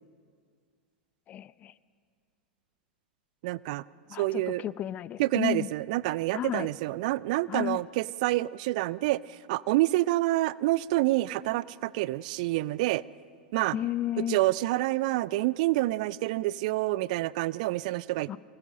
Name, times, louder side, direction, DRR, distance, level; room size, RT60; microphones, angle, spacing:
voice 1, 1.3-1.7 4.1-5.7 6.3-6.7 7.5-7.8 13.7-14.4 18.3-18.4, left 12 dB, 30° left, 18 dB, 0.6 m, -32 dB
voice 2, 3.4-3.8 4.2-4.6 5.2-13.0 13.5-13.8 14.2-18.4, right 18 dB, 50° right, 20 dB, 0.5 m, -28 dB
25.0 x 19.0 x 6.5 m, 2.1 s
figure-of-eight pair, 95°, 5 cm